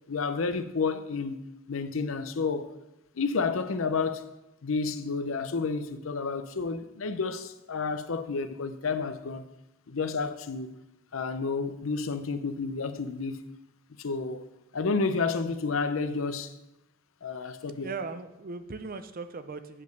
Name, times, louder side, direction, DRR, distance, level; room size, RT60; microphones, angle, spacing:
voice 1, 0.1-1.4 1.7-2.7 3.2-4.3 4.6-9.5 9.9-10.7 11.1-13.4 14.0-14.5 14.7-16.5 17.2-17.9, left 4 dB, 85° left, 0.6 m, -30 dB
voice 2, 17.8-19.8, right 4 dB, 45° right, 0.6 m, -38 dB
8.6 x 5.2 x 6.6 m
head